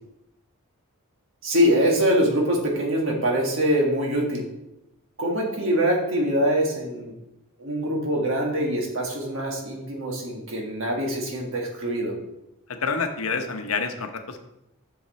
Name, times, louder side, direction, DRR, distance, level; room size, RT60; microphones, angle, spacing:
voice 1, 1.4-4.4 5.2-7.1 7.6-12.1, equal, 60° right, 0 dB, 1.6 m, -24 dB
voice 2, 12.8-14.4, left 5 dB, 70° left, 6 dB, 0.8 m, -27 dB
7.3 x 5.8 x 4.0 m, 0.90 s
head